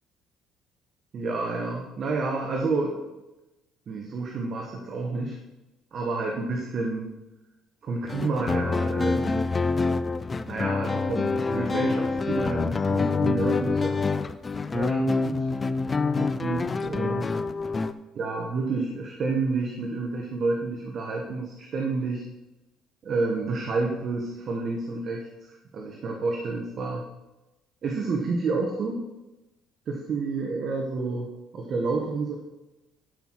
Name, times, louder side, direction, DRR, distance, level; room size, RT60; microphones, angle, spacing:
voice 1, 1.1-3.1 3.9-5.4 5.9-7.1 7.8-9.5 10.5-14.0 14.7-15.4 16.2-17.3 18.1-22.3 23.0-27.0 27.8-29.1 29.9-31.3 31.5-32.4, right 3 dB, 45° right, 1 dB, 1.3 m, -29 dB
sound 1, 8.0-17.9, left 4 dB, 25° left, 0.5 m, -26 dB
12.0 x 5.7 x 4.7 m, 1.0 s
cardioid pair, 115°, 0 cm